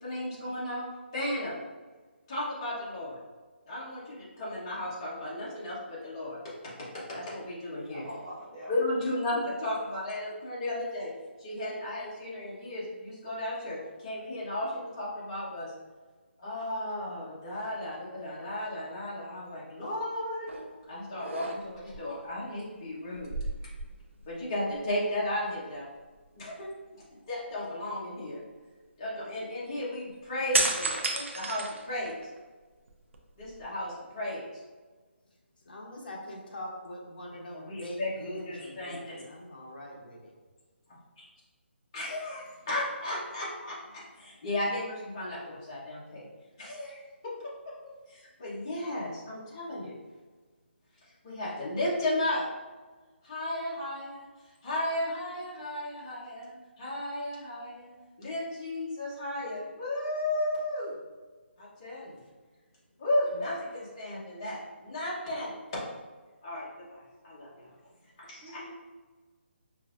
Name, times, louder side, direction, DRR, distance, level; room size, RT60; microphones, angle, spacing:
voice 1, 0.0-0.9 1.1-1.5 2.3-3.2 3.7-6.4 7.1-8.0 8.7-11.1 11.4-15.7 16.4-20.5 20.9-23.3 24.3-25.8 26.4-28.4 29.0-32.2 33.4-34.4 37.5-39.0 40.9-41.2 41.9-46.3 46.6-47.3 48.1-50.0 51.2-52.4 53.2-54.3 54.6-60.9 61.6-62.2 63.0-65.5 66.4-67.7 68.2-68.7, left 1 dB, 25° left, -7 dB, 1.0 m, -34 dB
voice 2, 7.9-8.7 68.4-68.7, equal, 10° right, -10 dB, 0.3 m, -43 dB
sound 1, 20.5-20.7 21.2-22.0 23.1-24.4 24.7-24.9 30.5-32.4 32.9-33.8, right 2 dB, 90° right, 0.7 m, -32 dB
voice 3, 35.6-40.3, left 1 dB, 50° left, -2 dB, 0.9 m, -43 dB
5.3 x 2.6 x 2.5 m, 1.4 s
hypercardioid pair, 175°, 7 cm